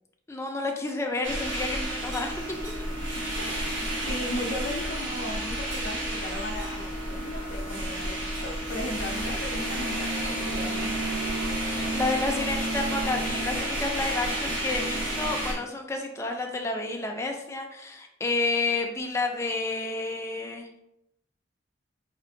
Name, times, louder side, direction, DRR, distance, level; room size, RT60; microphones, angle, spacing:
voice 1, 0.3-2.7 3.4-3.6 10.2-10.9 11.5-20.8, left 3 dB, 15° left, 2 dB, 0.4 m, -31 dB
sound 1, 1.2-15.5, right 1 dB, 75° right, 0.9 m, -31 dB
voice 2, 3.1-3.5 3.8-10.3 10.5-10.9, left 1 dB, 85° left, -1 dB, 0.5 m, -37 dB
4.4 x 2.5 x 2.6 m, 0.81 s
head